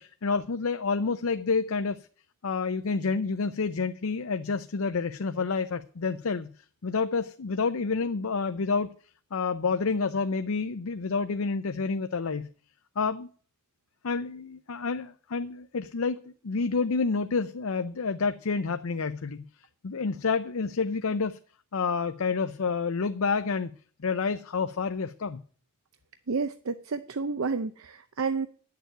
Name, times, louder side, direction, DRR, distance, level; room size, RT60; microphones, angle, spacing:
voice 1, 0.0-2.0 2.4-6.5 6.8-8.9 9.3-12.5 13.0-13.3 14.0-19.4 19.8-21.4 21.7-23.7 24.0-25.4, left 4 dB, 80° left, 0.6 m, -29 dB
voice 2, 26.3-28.5, right 4 dB, 75° right, 0.6 m, -30 dB
10.5 x 6.9 x 9.2 m
head